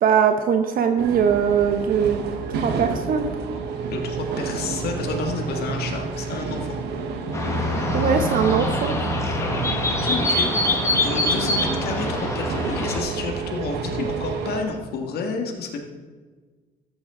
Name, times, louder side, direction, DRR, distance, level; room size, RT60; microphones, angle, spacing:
voice 1, 0.0-2.2 2.5-3.3 7.9-9.0, right 7 dB, 60° right, 7 dB, 0.9 m, -21 dB
sound 1, 1.0-14.6, right 5 dB, 80° right, 1.4 m, -30 dB
voice 2, 3.9-6.8 9.4-9.6 9.9-15.8, left 4 dB, 70° left, 3 dB, 1.9 m, -30 dB
sound 2, 7.3-13.0, left 1 dB, 15° left, 1.8 m, -24 dB
13.5 x 8.3 x 3.8 m, 1.4 s
cardioid pair, 110°, 17 cm